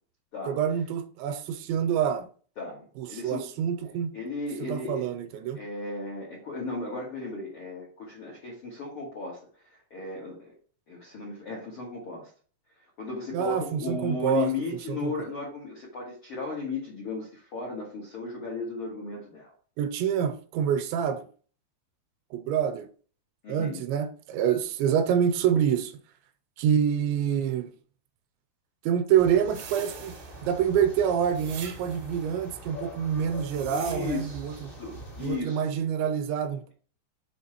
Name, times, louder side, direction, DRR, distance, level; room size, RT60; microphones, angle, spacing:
voice 1, 0.5-2.3 3.0-4.1 4.7-5.6 13.3-14.5 14.9-15.1 19.8-21.3 22.3-22.9 23.5-25.9 26.6-27.7 28.9-30.1 30.4-34.7 35.2-36.7, right 8 dB, 90° right, 2.9 m, -26 dB
voice 2, 2.6-3.5 4.1-5.1 5.5-9.4 9.7-10.5 10.9-12.3 13.0-19.5 23.4-23.8 33.7-35.7, left 3 dB, 70° left, 1.2 m, -35 dB
sound 1, 29.1-35.4, equal, 45° left, 0.6 m, -43 dB
sound 2, 29.5-30.7 31.4-32.2 33.2-34.5, right 7 dB, 70° right, 2.7 m, -45 dB
7.0 x 3.8 x 4.4 m
omnidirectional pair, 5.1 m